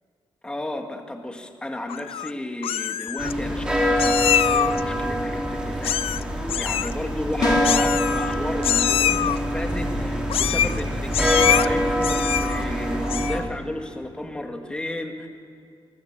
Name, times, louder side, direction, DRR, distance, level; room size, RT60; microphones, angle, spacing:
voice 1, 0.4-6.0 6.3-15.3, left 1 dB, 10° left, 4 dB, 2.0 m, -33 dB
Meow, 1.9-2.3 2.6-3.3 4.0-4.8 5.8-6.2 6.5-6.9 7.6-8.3 8.6-9.4 10.3-10.8 11.1-11.7 12.0-12.6 13.0-13.5, left 10 dB, 85° left, 0.6 m, -24 dB
sound 1, 3.2-13.4, equal, 10° right, 3.7 m, -24 dB
sound 2, 7.4-7.9, left 5 dB, 50° left, 2.6 m, -25 dB
25.5 x 23.0 x 7.3 m, 2.4 s
wide cardioid pair, 175°, 9 cm